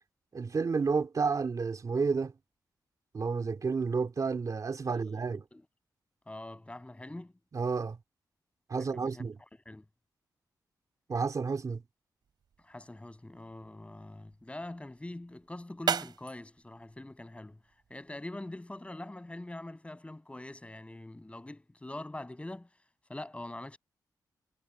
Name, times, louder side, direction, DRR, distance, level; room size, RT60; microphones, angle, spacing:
voice 1, 0.3-2.3 3.1-5.4 7.5-8.0 8.7-9.4 11.1-11.8, right 5 dB, 50° right, 2.8 m, -31 dB
voice 2, 5.3-5.6 6.3-7.3 8.8-9.3 9.7-9.8 12.6-17.6 17.9-22.7 23.1-23.8, left 1 dB, 15° left, 7.8 m, -44 dB
sound 1, 12.2-18.2, right 7 dB, 75° right, 3.5 m, -40 dB
cardioid pair, 70°, 7 cm